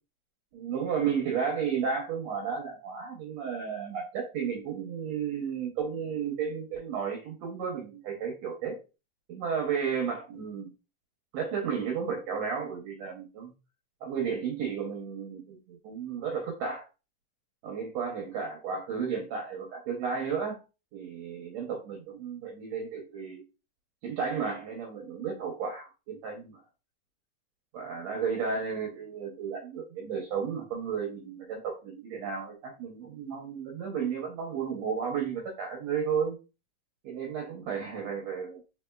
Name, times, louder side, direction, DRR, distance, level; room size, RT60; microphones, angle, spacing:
voice 1, 0.5-8.8 9.3-10.7 11.3-13.5 14.0-16.9 17.6-20.6 20.9-23.4 24.0-26.6 27.7-36.4 37.0-38.6, right 6 dB, 65° right, 0 dB, 1.8 m, -33 dB
4.9 x 4.2 x 2.3 m, 0.30 s
omnidirectional pair, 3.9 m